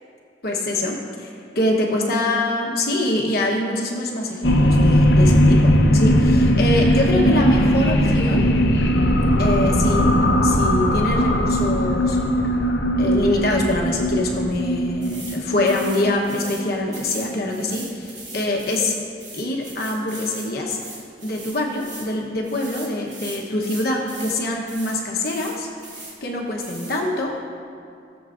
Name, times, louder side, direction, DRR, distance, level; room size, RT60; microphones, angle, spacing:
voice 1, 0.4-8.5 9.4-12.2 13.0-19.0 19.3-20.8 21.2-25.7 25.9-27.3, left 1 dB, 60° left, -1 dB, 1.0 m, -24 dB
sound 1, 4.4-17.3, equal, 85° left, 0.8 m, -18 dB
sound 2, 15.0-15.4 15.7-16.6 16.9-22.1 22.4-24.4 24.7-25.0 25.2-26.1 26.6-27.0, right 2 dB, 45° right, 2.3 m, -39 dB
19.5 x 7.1 x 2.6 m, 2.4 s
head